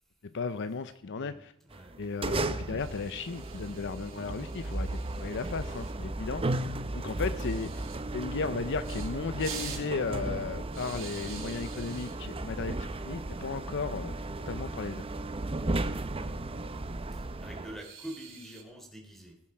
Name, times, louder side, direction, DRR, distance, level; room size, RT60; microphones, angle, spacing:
voice 1, 0.2-1.5 2.0-6.6 6.9-7.7 8.1-14.1 14.5-15.1, left 4 dB, 55° left, 12 dB, 0.6 m, -35 dB
voice 2, 1.1-2.0 17.1-19.4, right 1 dB, ahead, 1 dB, 3.3 m, -46 dB
sound 1, 1.7-17.8, right 2 dB, 25° right, 0.7 m, -35 dB
sound 2, 2.8-5.9 7.4-8.0 8.8-9.1 9.4-9.9 10.7-12.1 13.3-13.6 13.8-13.9 14.3-14.4 15.7-16.2 17.8-18.6, right 6 dB, 65° right, 3.0 m, -46 dB
18.5 x 7.3 x 4.8 m, 0.78 s
head